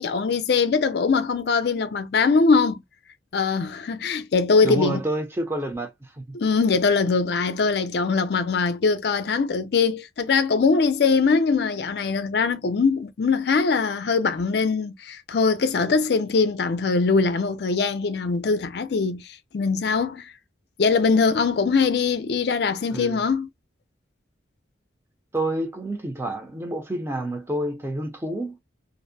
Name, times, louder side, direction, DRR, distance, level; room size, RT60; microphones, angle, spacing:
voice 1, 0.0-2.8 3.3-5.0 6.3-20.3 20.8-23.5, left 4 dB, 60° left, 0.4 m, -22 dB
voice 2, 4.6-6.3 22.9-23.2 25.3-28.6, right 1 dB, 15° right, 0.5 m, -28 dB
2.5 x 2.0 x 2.5 m
head